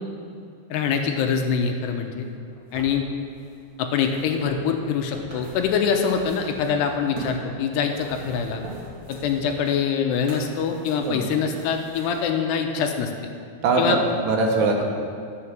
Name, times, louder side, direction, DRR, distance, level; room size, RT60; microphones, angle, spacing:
voice 1, 0.7-2.3 2.7-3.0 3.8-8.6 9.1-13.1 13.8-14.0, left 6 dB, 85° left, 4 dB, 2.8 m, -24 dB
sound 1, 2.3-7.4 7.8-12.3 13.1-13.2, right 2 dB, 35° right, 2.7 m, -43 dB
voice 2, 13.6-14.8, right 3 dB, 75° right, 1 dB, 3.1 m, -22 dB
11.0 x 6.9 x 7.3 m, 2.3 s
omnidirectional pair, 4.9 m